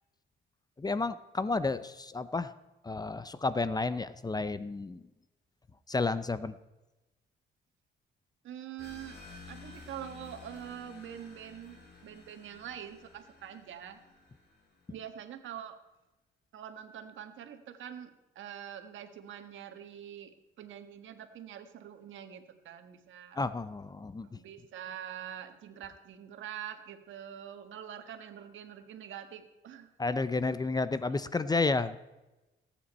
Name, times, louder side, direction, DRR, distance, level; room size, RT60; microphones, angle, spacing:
voice 1, 0.8-2.5 2.8-5.0 5.9-6.6 23.4-24.4 30.0-32.0, left 3 dB, 20° left, 14 dB, 0.6 m, -31 dB
voice 2, 8.4-9.2 9.5-14.0 14.9-15.8 16.5-18.1 18.3-20.3 20.6-23.4 24.2-29.9 30.5-30.6 31.1-31.2, right 9 dB, 75° right, 7 dB, 1.5 m, -45 dB
sound 1, 8.8-15.0, left 4 dB, 55° left, 4.8 m, -53 dB
18.5 x 9.0 x 4.3 m, 1.0 s
cardioid pair, 90°, 20 cm